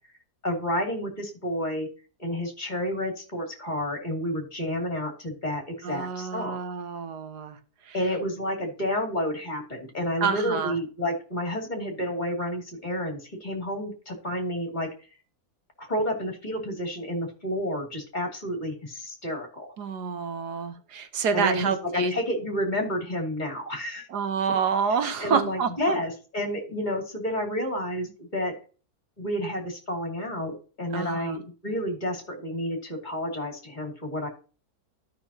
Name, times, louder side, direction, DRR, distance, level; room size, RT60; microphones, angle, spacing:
voice 1, 0.4-1.9 2.2-6.6 7.9-14.9 15.8-19.7 21.3-24.1 25.2-28.5 29.2-34.3, equal, 30° left, 1 dB, 2.7 m, -30 dB
voice 2, 5.8-7.6 7.8-8.0 10.2-10.8 19.8-22.1 24.1-26.0 30.9-31.4, right 6 dB, 85° right, 9 dB, 1.6 m, -28 dB
13.0 x 6.0 x 2.8 m, 0.36 s
omnidirectional pair, 1.7 m